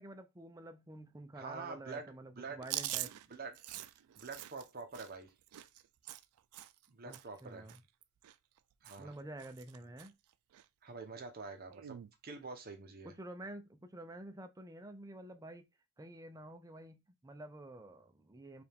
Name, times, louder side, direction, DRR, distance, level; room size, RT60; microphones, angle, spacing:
voice 1, 0.0-3.1 7.1-7.8 9.0-10.2 13.0-15.7 16.0-18.6, right 1 dB, 15° right, 0.4 m, -49 dB
voice 2, 1.4-2.7 3.3-3.8 4.2-5.3 6.9-7.7 8.8-9.1 10.8-12.0 12.2-13.1, right 4 dB, 45° right, 0.8 m, -46 dB
Chewing mastication, 2.6-6.9 7.1-7.4 7.7-8.6 8.8-9.2 9.4-10.1 10.5-10.7 11.7-12.1, right 14 dB, 90° right, 0.3 m, -44 dB
4.8 x 2.4 x 3.4 m
head